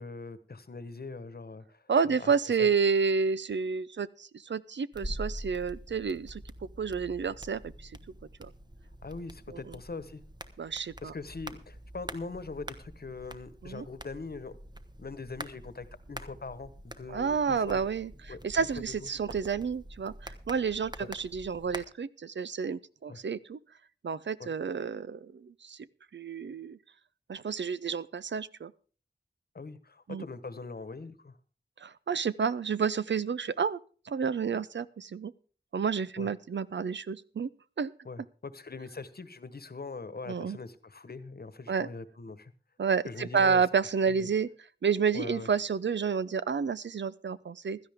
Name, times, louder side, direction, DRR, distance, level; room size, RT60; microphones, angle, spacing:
voice 1, 0.0-2.7 9.0-10.2 11.0-14.5 15.0-17.8 18.3-18.4 21.0-21.1 23.1-23.2 24.4-24.5 29.5-31.4 36.2-36.3 38.0-42.5 43.1-43.6 44.1-44.3 45.1-45.5, left 4 dB, 60° left, 14 dB, 1.1 m, -42 dB
voice 2, 1.9-6.4 6.8-7.9 8.4-8.5 9.5-9.6 10.6-11.1 13.6-13.8 17.1-18.1 18.4-23.6 24.0-25.9 26.1-26.8 27.3-28.7 30.1-30.2 31.8-33.8 34.1-35.3 35.7-37.5 37.8-37.9 40.3-40.6 41.7-41.9 42.8-44.5 44.8-47.8, right 6 dB, 85° right, 17 dB, 0.6 m, -30 dB
sound 1, 4.9-21.8, right 1 dB, 25° right, 1.1 m, -45 dB
16.5 x 12.5 x 3.6 m, 0.39 s
wide cardioid pair, 65°, 18 cm